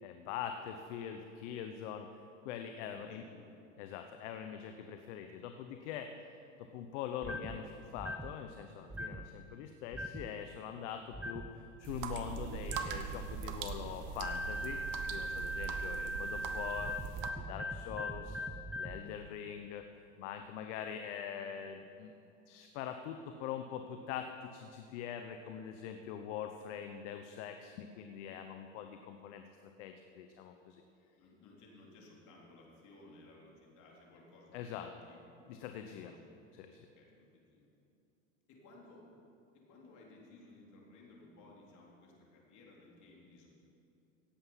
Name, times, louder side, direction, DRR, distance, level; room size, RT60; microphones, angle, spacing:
voice 1, 0.0-2.1 2.4-3.3 3.8-6.1 6.7-14.8 15.1-16.9 17.3-18.4 18.8-19.8 20.2-22.1 22.5-30.8 34.5-34.9 35.5-36.1 36.6-36.9, left 8 dB, 65° left, 6 dB, 0.9 m, -43 dB
voice 2, 2.8-3.5 8.7-9.2 17.8-18.0 20.4-20.5 28.7-28.8 31.2-35.2 35.8-36.2 36.8-37.7 38.5-39.0 39.5-43.5, left 2 dB, 50° left, -2 dB, 3.6 m, -59 dB
sound 1, 7.2-7.6 8.0-8.3 8.9-9.3 9.9-10.3 11.1-11.5 12.6-13.0 14.2-19.0, equal, 5° right, 0.3 m, -40 dB
sound 2, 11.8-17.3, right 7 dB, 55° right, 1.2 m, -41 dB
17.0 x 7.8 x 5.7 m, 2.7 s
hypercardioid pair, 100°, 39 cm